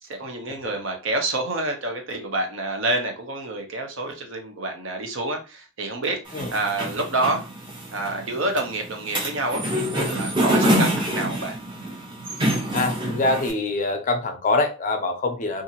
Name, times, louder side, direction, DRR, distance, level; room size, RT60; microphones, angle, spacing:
voice 1, 0.0-7.5 7.9-11.6, right 2 dB, 60° right, 3 dB, 0.8 m, -28 dB
sound 1, 6.3-13.5, equal, 20° right, 0.8 m, -26 dB
voice 2, 12.7-15.6, left 2 dB, 35° left, 5 dB, 0.4 m, -24 dB
2.7 x 2.5 x 2.7 m, 0.32 s
head